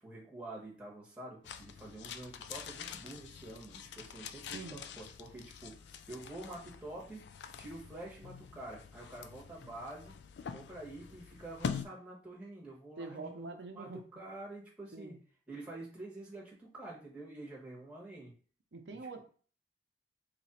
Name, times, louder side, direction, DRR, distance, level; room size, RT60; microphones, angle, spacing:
voice 1, 0.0-7.2 7.6-10.1 10.5-13.5 13.7-15.1 15.5-18.3 18.9-19.0, right 2 dB, 5° right, -5 dB, 1.1 m, -47 dB
sound 1, 1.4-11.9, left 6 dB, 70° left, 0.3 m, -45 dB
voice 2, 4.5-4.8 13.0-14.0 14.9-15.2 18.7-19.2, right 3 dB, 80° right, 5 dB, 0.7 m, -45 dB
3.0 x 2.5 x 4.2 m, 0.42 s
head